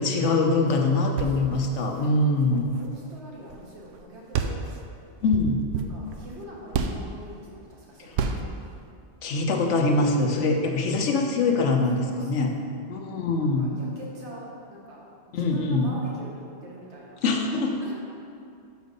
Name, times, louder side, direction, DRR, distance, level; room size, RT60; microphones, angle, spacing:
voice 1, 0.0-2.7 5.2-5.6 9.2-12.5 12.9-13.7 15.3-15.9 17.2-17.8, left 3 dB, 75° left, 2 dB, 1.1 m, -23 dB
voice 2, 0.8-1.9 2.3-4.7 5.7-8.4 10.3-11.0 11.9-12.7 13.0-17.2 17.8-17.9, equal, 65° right, -3 dB, 1.6 m, -44 dB
sound 1, 1.0-3.6 3.9-4.0 4.3-7.2 8.1-8.6, right 6 dB, 85° right, 0.9 m, -31 dB
6.1 x 5.4 x 5.2 m, 2.4 s
omnidirectional pair, 1.2 m